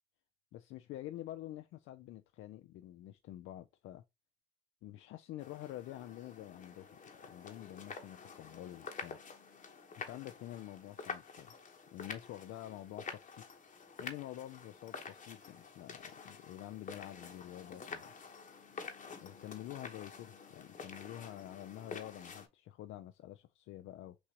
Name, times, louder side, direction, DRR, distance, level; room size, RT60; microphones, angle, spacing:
voice 1, 0.5-4.0 4.8-9.2 10.0-11.5 11.9-13.5 14.0-18.1 19.2-24.2, left 14 dB, 85° left, 0.4 m, -48 dB
sound 1, 5.4-22.5, left 5 dB, 40° left, 1.0 m, -49 dB
6.1 x 2.4 x 2.8 m
cardioid pair, 90°, 20 cm